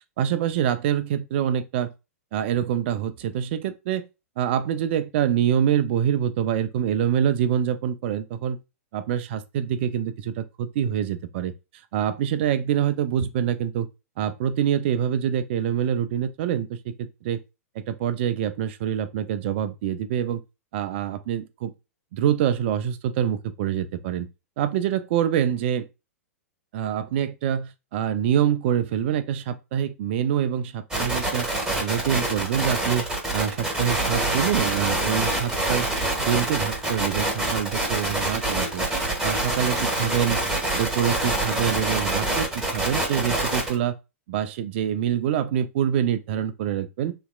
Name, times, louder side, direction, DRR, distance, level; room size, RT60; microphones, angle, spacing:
voice 1, 0.2-1.9 2.3-4.0 4.4-8.6 8.9-11.5 11.9-13.9 14.2-17.4 17.7-20.4 20.7-21.7 22.1-24.3 24.6-25.9 26.7-31.5 31.8-33.1 33.3-35.9 36.2-38.9 39.2-40.4 40.7-44.0 44.3-47.1, right 9 dB, 50° right, 0.5 m, -25 dB
sound 1, 30.9-43.8, right 2 dB, 10° right, 1.4 m, -26 dB
3.3 x 2.9 x 2.4 m
figure-of-eight pair, 110°, 8 cm